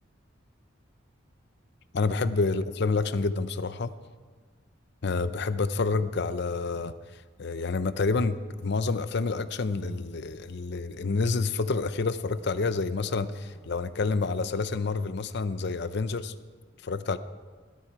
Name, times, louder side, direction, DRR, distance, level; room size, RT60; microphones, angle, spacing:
voice 1, 1.9-3.9 5.0-6.9 7.4-16.3 16.8-17.2, left 3 dB, 60° left, 13 dB, 0.6 m, -28 dB
sound 1, 8.6-15.1, equal, 35° right, 5.1 m, -58 dB
18.5 x 12.0 x 4.7 m, 1.5 s
head